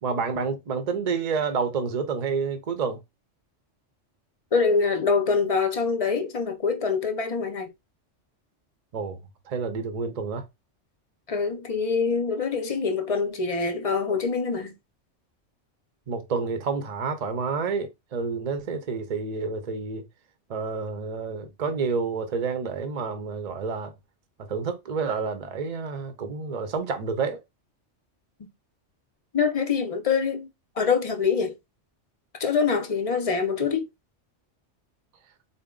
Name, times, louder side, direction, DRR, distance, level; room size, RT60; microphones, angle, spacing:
voice 1, 0.0-3.0 8.9-9.2 9.5-10.5 16.1-20.0 20.5-23.9 24.5-27.4, right 5 dB, 45° right, 0.6 m, -29 dB
voice 2, 4.5-7.7 11.3-14.8 29.3-30.5 30.8-31.6 32.4-33.8, left 5 dB, 45° left, 0.5 m, -25 dB
4.0 x 2.1 x 3.7 m
omnidirectional pair, 1.2 m